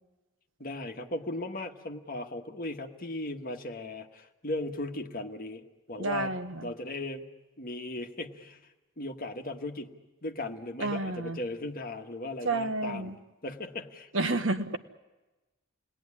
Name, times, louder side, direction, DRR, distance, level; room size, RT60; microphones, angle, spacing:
voice 1, 0.6-7.3 7.6-8.6 9.0-9.9 10.2-13.2 13.4-14.1, left 2 dB, 45° left, 4 dB, 1.6 m, -37 dB
voice 2, 6.0-6.6 10.8-11.4 12.4-13.2 14.1-14.8, right 2 dB, 60° right, 8 dB, 1.3 m, -30 dB
29.0 x 20.0 x 9.9 m, 1.1 s
head